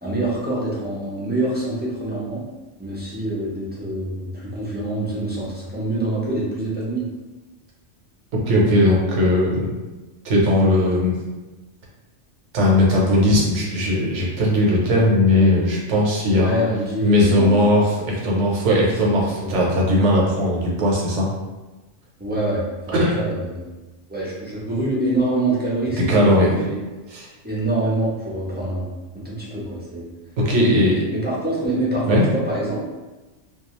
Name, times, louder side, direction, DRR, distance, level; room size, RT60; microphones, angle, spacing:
voice 1, 0.0-2.5 2.8-7.1 16.3-17.5 19.0-19.8 22.2-23.7 24.1-26.8 27.4-28.9 29.1-30.1 31.1-32.8, right 1 dB, 15° right, -7 dB, 0.4 m, -25 dB
voice 2, 8.5-9.7 10.2-11.1 12.5-16.6 17.0-21.3 22.9-23.1 26.0-26.6 27.1-27.3 30.4-31.1 32.0-32.2, left 1 dB, 80° right, -3 dB, 1.1 m, -18 dB
2.3 x 2.3 x 2.9 m, 1.1 s
omnidirectional pair, 1.2 m